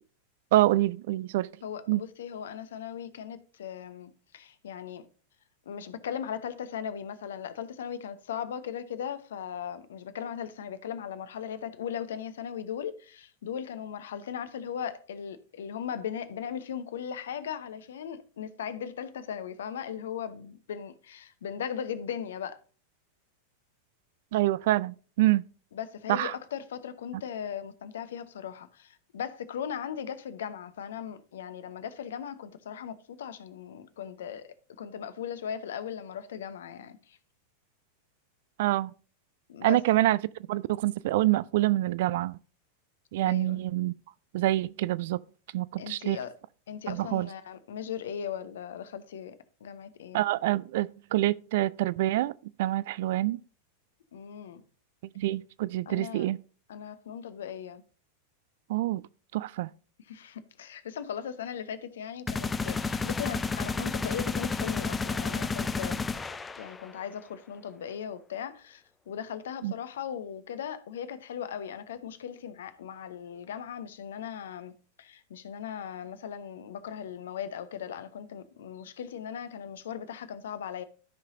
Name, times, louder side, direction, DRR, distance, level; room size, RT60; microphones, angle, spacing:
voice 1, 0.5-1.5 1.9-2.0 24.3-25.4 26.1-26.3 38.6-38.9 39.6-40.2 40.5-42.4 43.1-43.9 44.3-45.2 45.5-46.2 46.9-47.3 50.1-52.3 52.6-53.4 55.2-56.4 58.7-59.0 59.3-59.7 69.6-69.7, right 16 dB, 55° right, 0.3 m, -26 dB
voice 2, 1.6-5.1 5.7-22.6 25.7-37.2 39.5-39.8 43.3-43.6 45.8-46.3 46.7-50.2 54.1-54.6 55.9-56.3 56.7-57.8 60.1-66.2 66.6-80.8, left 8 dB, 60° left, 0.8 m, -38 dB
sound 1, 62.3-67.0, left 4 dB, 15° left, 0.5 m, -31 dB
13.5 x 5.7 x 2.6 m
figure-of-eight pair, 90°, 0 cm